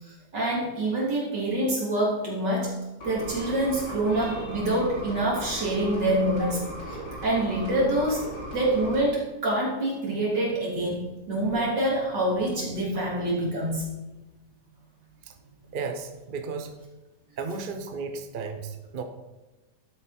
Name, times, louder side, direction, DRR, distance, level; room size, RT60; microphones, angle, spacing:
voice 1, 0.3-2.7 3.0-6.6 7.2-8.2 8.5-13.8, right 1 dB, 75° right, -5 dB, 4.0 m, -26 dB
sound 1, 3.0-9.0, right 1 dB, 80° left, 3.7 m, -37 dB
voice 2, 15.7-16.7 17.4-19.0, right 4 dB, 40° right, 6 dB, 0.8 m, -34 dB
12.0 x 8.0 x 4.4 m, 1.1 s
omnidirectional pair, 1.9 m